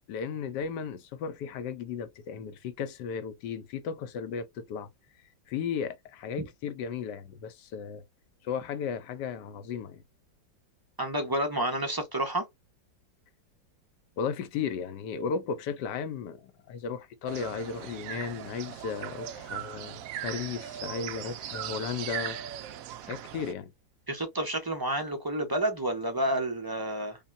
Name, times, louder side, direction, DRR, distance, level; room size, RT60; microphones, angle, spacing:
voice 1, 0.1-4.9 5.5-8.0 8.4-10.0 14.2-22.4 23.0-23.7, left 6 dB, 75° left, 1.2 m, -35 dB
voice 2, 11.0-12.5 24.1-27.2, right 1 dB, 25° right, 0.5 m, -30 dB
sound 1, 17.3-23.5, right 11 dB, 75° right, 0.7 m, -39 dB
5.3 x 2.2 x 2.6 m
omnidirectional pair, 2.0 m